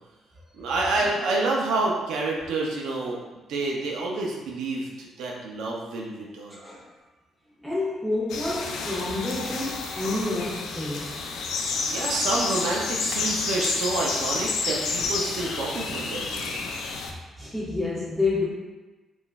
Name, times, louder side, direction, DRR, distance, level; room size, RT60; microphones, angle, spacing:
voice 1, 0.5-3.2 3.5-6.6 11.9-16.6, right 2 dB, 85° right, -2 dB, 0.5 m, -28 dB
voice 2, 6.5-6.9 7.6-11.2 17.4-18.5, left 2 dB, ahead, -7 dB, 1.1 m, -29 dB
sound 1, 8.3-17.1, left 4 dB, 80° left, 0.4 m, -30 dB
3.8 x 2.5 x 2.2 m, 1.2 s
cardioid pair, 90°, 0 cm